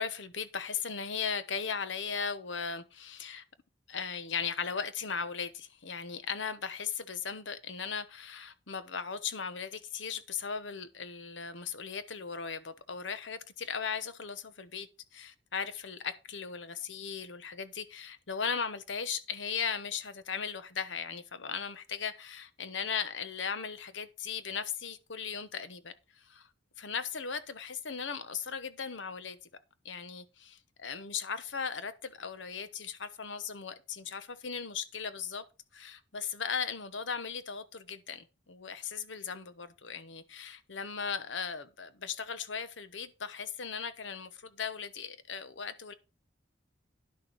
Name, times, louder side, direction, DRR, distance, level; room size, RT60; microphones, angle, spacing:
voice 1, 0.0-3.4 3.9-26.5 26.8-29.4 29.8-35.4 35.7-45.9, left 6 dB, 80° left, 1.0 m, -37 dB
10.5 x 6.7 x 4.6 m
head